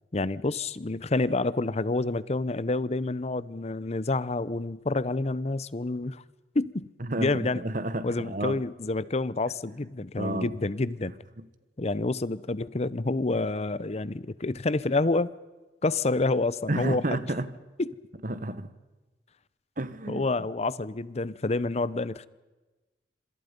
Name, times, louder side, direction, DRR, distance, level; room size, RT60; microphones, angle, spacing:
voice 1, 0.1-6.2 6.5-6.9 7.2-7.6 8.0-11.1 11.8-15.3 15.8-17.3 17.8-17.9 20.1-22.3, left 2 dB, 35° left, 0.7 m, -28 dB
voice 2, 7.0-8.6 10.2-10.5 11.4-11.5 16.7-17.5 18.2-18.7 19.8-20.2, right 1 dB, 50° right, 1.4 m, -31 dB
26.5 x 26.0 x 5.3 m
head